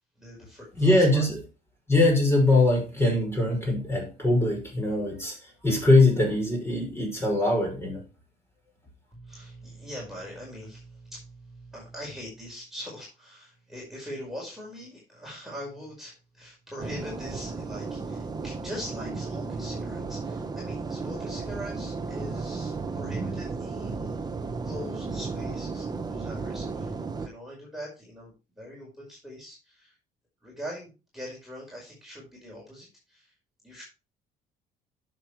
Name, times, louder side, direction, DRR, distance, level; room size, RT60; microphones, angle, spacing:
voice 1, 0.2-1.2 9.1-24.2 24.6-29.9 30.4-33.3 33.6-33.8, equal, ahead, -3 dB, 4.9 m, -42 dB
voice 2, 0.8-1.4 1.9-8.0, left 2 dB, 15° left, 0 dB, 6.0 m, -22 dB
sound 1, 16.8-27.3, right 4 dB, 25° right, 1.1 m, -34 dB
11.0 x 6.9 x 3.3 m, 0.29 s
cardioid pair, 110°, 17 cm